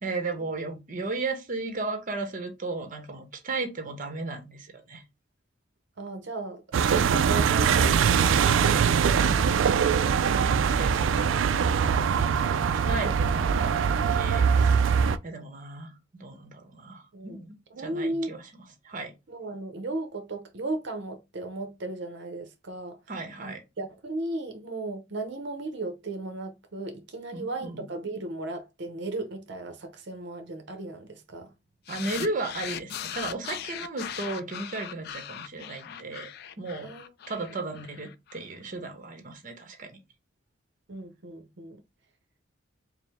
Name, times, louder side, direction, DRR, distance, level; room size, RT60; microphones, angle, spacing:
voice 1, 0.0-5.0 10.3-12.6 12.9-14.8 15.2-18.4 18.8-19.1 23.1-23.6 27.3-27.9 31.9-36.3 36.6-36.9 37.3-40.0, right 3 dB, 45° right, 1.0 m, -35 dB
voice 2, 6.0-8.7 9.0-9.9 17.1-17.4 17.7-18.4 19.3-23.0 23.4-31.5 36.8-37.5 40.9-41.8, right 2 dB, 65° right, 0.8 m, -36 dB
sound 1, 6.7-15.2, right 6 dB, 80° right, 0.4 m, -22 dB
sound 2, 31.9-38.4, left 9 dB, 55° left, 0.3 m, -39 dB
4.8 x 2.1 x 3.5 m
head